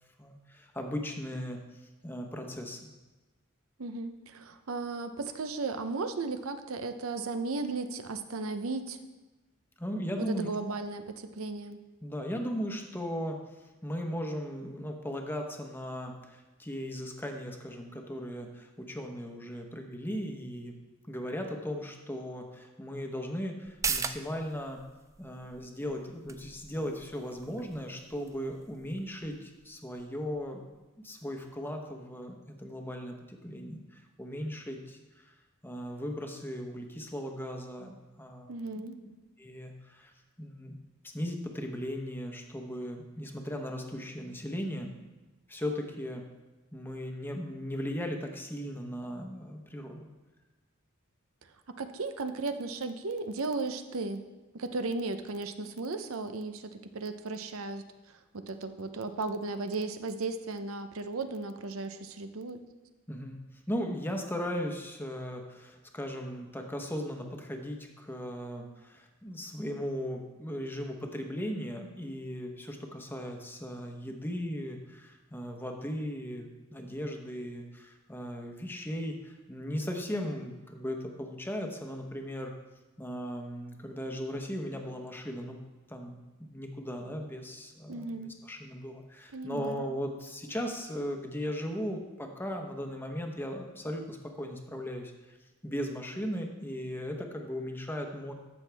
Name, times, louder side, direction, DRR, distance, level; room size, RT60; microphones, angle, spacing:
voice 1, 0.2-2.8 9.8-10.5 12.0-20.7 21.1-24.8 25.2-30.6 31.0-35.3 35.6-38.9 39.4-40.1 40.4-40.8 41.1-44.9 45.5-46.2 46.7-50.1 63.1-63.4 63.7-82.5 83.0-85.6 85.9-95.4 95.6-98.3, equal, 10° left, 3 dB, 1.0 m, -37 dB
voice 2, 3.8-9.0 10.2-11.8 38.5-39.0 51.8-54.2 54.5-57.8 58.3-62.6 87.9-88.3 89.3-89.9, right 3 dB, 75° right, 9 dB, 0.7 m, -35 dB
sound 1, 23.6-30.8 31.1-31.2, right 5 dB, 15° right, 0.3 m, -41 dB
14.0 x 6.2 x 3.4 m, 1.2 s
head